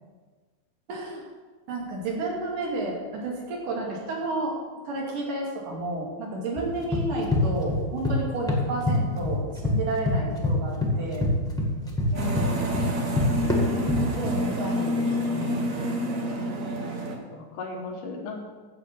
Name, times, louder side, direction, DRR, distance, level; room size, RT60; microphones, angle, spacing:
voice 1, 0.9-1.2 1.7-4.5 4.9-11.3 13.6-15.8, right 2 dB, 90° right, -2 dB, 4.1 m, -31 dB
sound 1, 6.6-8.2 8.5-9.8 10.0-14.4, left 2 dB, ahead, 1.3 m, -25 dB
voice 2, 12.1-12.8 17.3-18.4, left 3 dB, 80° left, -1 dB, 2.9 m, -36 dB
sound 2, 12.1-17.2, equal, 75° right, 0.7 m, -28 dB
11.0 x 8.3 x 6.1 m, 1.4 s
omnidirectional pair, 3.6 m